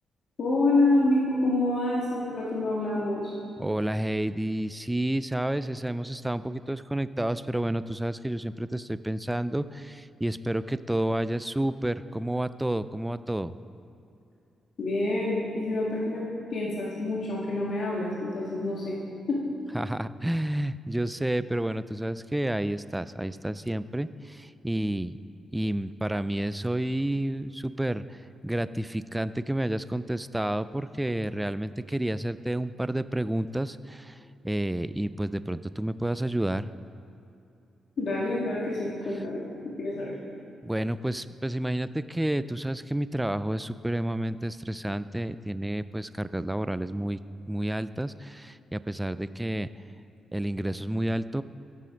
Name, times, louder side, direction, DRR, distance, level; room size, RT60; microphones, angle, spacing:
voice 1, 0.4-3.3 14.8-19.0 19.3-19.4 38.0-40.1, left 2 dB, 60° left, -5 dB, 1.8 m, -27 dB
voice 2, 3.6-13.5 19.7-25.2 25.5-36.7 40.6-47.2 47.5-49.7 50.3-51.4, right 1 dB, 10° right, 14 dB, 0.3 m, -30 dB
13.5 x 7.6 x 5.1 m, 2.7 s
cardioid pair, 80°, 0 cm